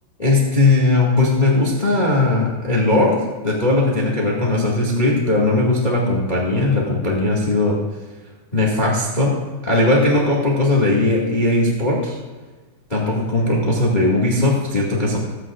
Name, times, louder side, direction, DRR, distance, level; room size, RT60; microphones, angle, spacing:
voice 1, 0.2-3.2 3.4-7.8 8.5-9.3 9.6-12.2 12.9-15.2, left 2 dB, 25° left, -3 dB, 1.0 m, -18 dB
20.0 x 8.8 x 2.5 m, 1.3 s
omnidirectional pair, 4.2 m